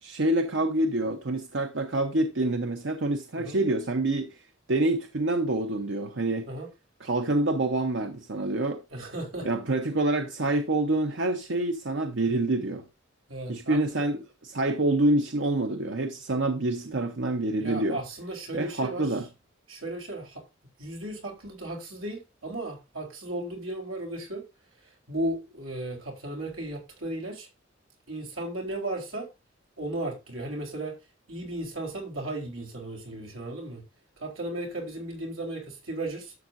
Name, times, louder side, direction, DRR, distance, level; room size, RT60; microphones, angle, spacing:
voice 1, 0.0-4.4 4.7-6.5 7.0-8.8 9.4-12.8 13.5-18.0 18.5-19.3, right 2 dB, 65° right, 0.9 m, -27 dB
voice 2, 8.9-9.5 13.3-13.8 16.8-17.0 17.6-19.1 19.7-20.4 20.8-24.4 25.1-27.5 28.1-29.3 29.8-30.9 31.3-33.8 34.2-36.3, right 1 dB, 90° right, 3.9 m, -35 dB
12.0 x 7.4 x 2.6 m
head